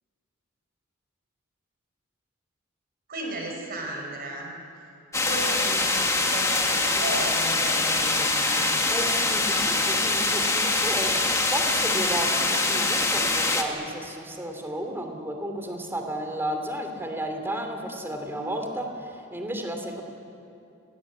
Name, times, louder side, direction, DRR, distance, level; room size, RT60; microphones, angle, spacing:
voice 1, 3.1-4.5 5.2-8.7 15.0-15.2, right 1 dB, 45° right, 0 dB, 5.3 m, -35 dB
sound 1, 5.1-13.6, left 2 dB, 15° left, 1.8 m, -24 dB
voice 2, 8.9-11.2 11.5-20.0, right 1 dB, 10° right, 3 dB, 2.9 m, -33 dB
28.5 x 20.0 x 8.6 m, 2.6 s
head